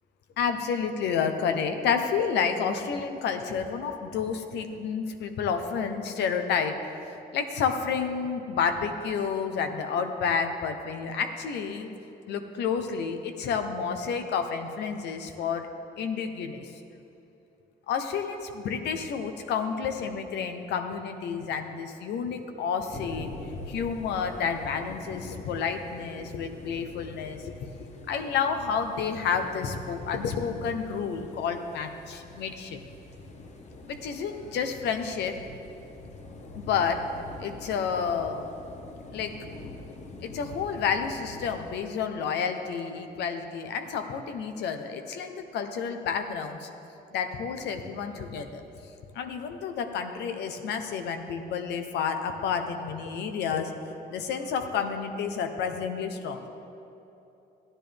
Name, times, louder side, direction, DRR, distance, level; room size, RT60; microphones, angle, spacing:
voice 1, 0.4-6.8 7.0-11.9 12.3-15.7 16.0-16.7 17.9-27.5 28.1-32.8 33.9-35.4 36.6-37.0 37.4-38.5 39.1-39.3 40.2-46.7 47.1-48.6 49.1-53.7 54.1-56.5, left 6 dB, 80° left, 6 dB, 0.8 m, -30 dB
sound 1, 22.9-41.7, left 2 dB, 40° left, 1.0 m, -44 dB
14.0 x 10.0 x 3.4 m, 3.0 s
cardioid pair, 115°, 17 cm